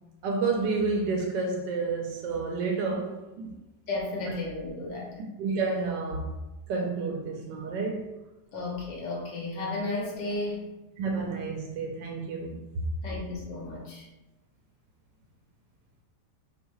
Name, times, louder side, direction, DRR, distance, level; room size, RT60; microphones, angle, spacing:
voice 1, 0.2-3.6 4.2-4.3 5.4-6.3 6.7-8.2 11.0-12.8, right 4 dB, 85° right, 1.3 m, -30 dB
voice 2, 3.9-5.3 8.5-10.6 13.0-14.1, left 2 dB, 85° left, 1.8 m, -33 dB
4.9 x 3.5 x 3.0 m
omnidirectional pair, 1.9 m